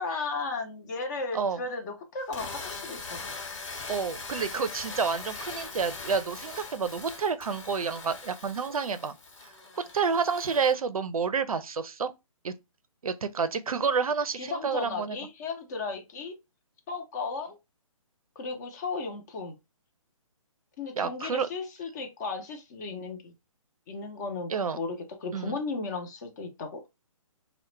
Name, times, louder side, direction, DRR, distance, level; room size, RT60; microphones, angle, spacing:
voice 1, 0.0-3.3 14.4-16.3 16.9-17.6 18.4-19.6 20.8-23.3 23.9-26.8, left 4 dB, 30° left, 0.5 m, -35 dB
sound 1, 2.2-10.7, left 4 dB, 55° left, 1.0 m, -41 dB
voice 2, 3.9-9.2 9.8-12.1 12.4-12.5 13.0-15.2 21.0-21.5 24.5-24.8 25.3-25.6, right 5 dB, 85° right, 0.4 m, -29 dB
2.2 x 2.1 x 3.0 m
figure-of-eight pair, 140°, 18 cm